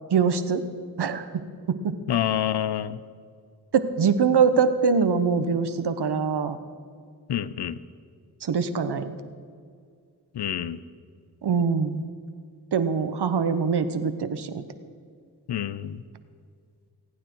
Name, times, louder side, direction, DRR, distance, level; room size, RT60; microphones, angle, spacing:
voice 1, 0.1-0.6 1.0-1.2 1.7-2.0 3.7-6.6 8.4-9.2 11.4-12.0 12.7-14.6, right 6 dB, 75° right, 10 dB, 1.0 m, -23 dB
voice 2, 2.1-3.0 7.3-7.8 10.3-10.8 15.5-16.0, left 10 dB, 80° left, 15 dB, 0.7 m, -27 dB
22.0 x 9.3 x 4.6 m, 2.1 s
cardioid pair, 40°, 40 cm